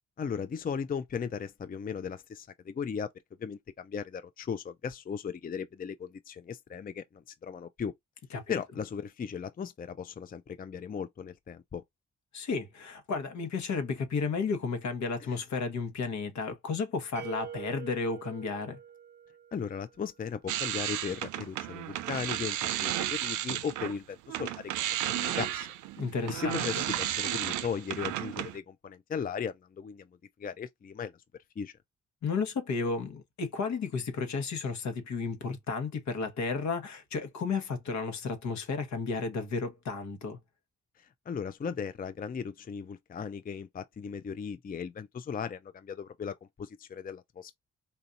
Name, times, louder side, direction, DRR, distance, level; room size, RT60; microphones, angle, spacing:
voice 1, 0.2-3.1 3.4-7.9 8.5-11.8 15.2-15.4 19.5-24.7 25.1-25.7 26.3-30.1 30.4-31.1 31.6-31.7 41.0-47.5, left 6 dB, 30° left, 0.5 m, -37 dB
voice 2, 12.3-18.8 26.0-26.7 32.2-40.4, left 4 dB, 70° left, 1.2 m, -33 dB
sound 1, 17.2-20.0, right 8 dB, 35° right, 0.5 m, -45 dB
sound 2, 20.5-24.0 24.3-28.6, right 13 dB, 85° right, 0.5 m, -33 dB
4.1 x 2.7 x 2.5 m
supercardioid pair, 50°, 29 cm